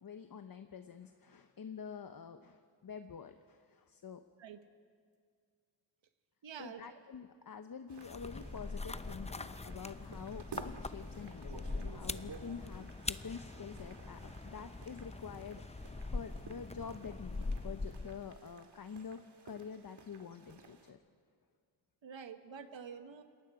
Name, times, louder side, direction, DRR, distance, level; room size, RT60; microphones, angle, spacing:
voice 1, 0.0-4.2 6.6-15.6 16.1-21.0, left 6 dB, 50° left, 9 dB, 0.9 m, -47 dB
voice 2, 6.4-7.0 22.0-23.2, right 7 dB, 80° right, 8 dB, 1.4 m, -48 dB
sound 1, 7.9-20.9, right 5 dB, 60° right, 2.1 m, -55 dB
sound 2, 8.0-18.4, left 3 dB, 15° left, 0.6 m, -43 dB
28.0 x 19.5 x 4.9 m, 2.1 s
cardioid pair, 55°, 45 cm